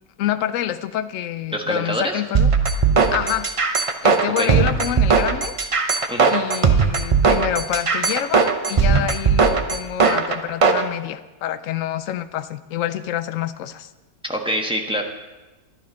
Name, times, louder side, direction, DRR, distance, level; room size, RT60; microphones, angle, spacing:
voice 1, 0.2-2.5 3.1-3.5 4.0-5.5 6.3-13.9, left 11 dB, 65° left, 12 dB, 0.9 m, -27 dB
voice 2, 1.5-2.2 4.4-4.5 6.1-6.3 14.2-15.0, equal, 5° right, 1 dB, 1.0 m, -25 dB
sound 1, 2.3-10.8, right 5 dB, 45° right, 0.4 m, -18 dB
11.5 x 11.0 x 5.2 m, 1.1 s
omnidirectional pair, 1.7 m